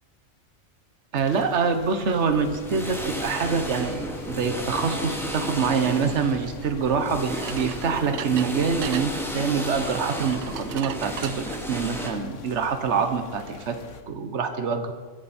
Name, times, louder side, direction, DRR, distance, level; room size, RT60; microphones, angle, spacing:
sound 1, 1.1-14.0, left 5 dB, 80° left, 1.4 m, -44 dB
voice 1, 1.1-13.7 14.1-14.9, right 5 dB, 65° right, 7 dB, 1.4 m, -25 dB
sound 2, 2.3-12.1, equal, ahead, 2.0 m, -33 dB
sound 3, 7.4-9.1 10.2-11.4, right 10 dB, 85° right, 1.0 m, -37 dB
22.0 x 11.0 x 4.4 m, 1.5 s
omnidirectional pair, 1.3 m